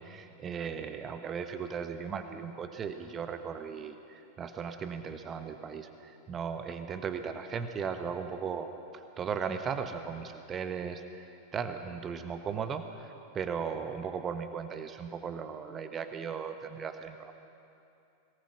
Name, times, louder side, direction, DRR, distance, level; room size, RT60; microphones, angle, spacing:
voice 1, 0.0-17.3, right 6 dB, 25° right, 8 dB, 1.2 m, -37 dB
23.5 x 18.5 x 6.2 m, 2.6 s
figure-of-eight pair, 90°, 0 cm